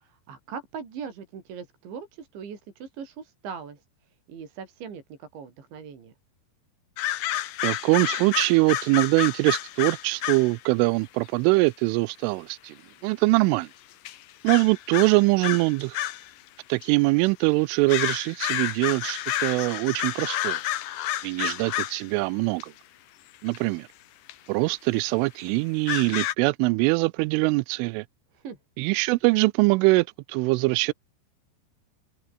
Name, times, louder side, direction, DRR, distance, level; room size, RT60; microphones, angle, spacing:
voice 1, 0.0-3.8 4.3-6.1 28.3-28.6, right 6 dB, 65° right, 6.7 m, -40 dB
sound 1, 7.0-10.6 11.7-11.8 13.4-13.5 14.0-14.2 14.5-16.3 16.8-16.9 17.9-22.1 22.6-22.7 23.5-23.6 24.3-24.4 25.0-25.1 25.9-26.3, left 13 dB, 80° left, 1.9 m, -30 dB
voice 2, 7.6-12.8 13.0-13.7 14.4-16.0 16.7-20.6 21.2-22.7 23.4-23.9 24.5-28.1 28.8-30.9, right 24 dB, 85° right, 3.0 m, -23 dB
omnidirectional pair, 5.7 m